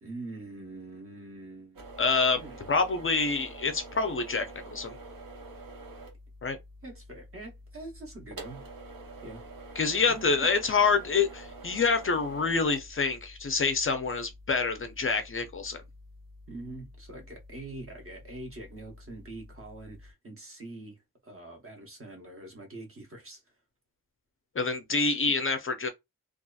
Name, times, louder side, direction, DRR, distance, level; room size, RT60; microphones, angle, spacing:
voice 1, 0.0-2.0 2.4-2.6 6.8-8.6 9.2-9.4 10.0-10.2 16.5-23.4 24.9-25.4, right 2 dB, 35° right, 0.9 m, -44 dB
sound 1, 1.7-20.1, right 1 dB, 65° right, 0.9 m, -47 dB
voice 2, 2.0-2.4 2.7-5.0 6.4-6.6 9.8-15.8 24.6-25.9, left 4 dB, 35° left, 0.4 m, -27 dB
2.7 x 2.4 x 2.2 m
wide cardioid pair, 170°, 36 cm